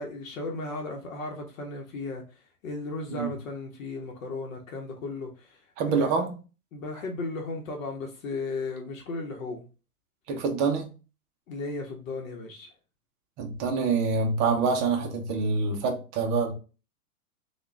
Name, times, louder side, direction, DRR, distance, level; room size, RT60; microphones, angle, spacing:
voice 1, 0.0-2.2 2.6-6.2 6.7-9.6 11.5-12.7, left 3 dB, 60° left, 0.9 m, -35 dB
voice 2, 5.8-6.4 10.3-10.9 13.4-16.5, right 4 dB, 25° right, 0.5 m, -26 dB
3.5 x 2.3 x 3.2 m
hypercardioid pair, 130°, 45 cm